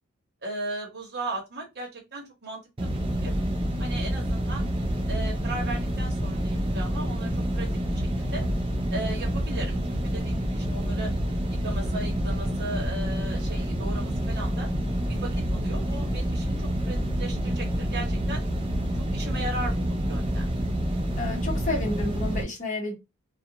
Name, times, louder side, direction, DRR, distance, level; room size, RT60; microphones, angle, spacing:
voice 1, 0.4-2.9 3.2-3.4 3.8-4.7 5.1-8.4 8.9-11.1 11.6-14.7 15.1-18.4 18.9-20.5, right 2 dB, 50° right, 1 dB, 1.0 m, -37 dB
sound 1, 2.8-22.4, equal, 25° right, 0.5 m, -28 dB
voice 2, 21.2-22.9, left 2 dB, 35° left, -1 dB, 1.0 m, -30 dB
2.4 x 2.3 x 2.8 m, 0.23 s
head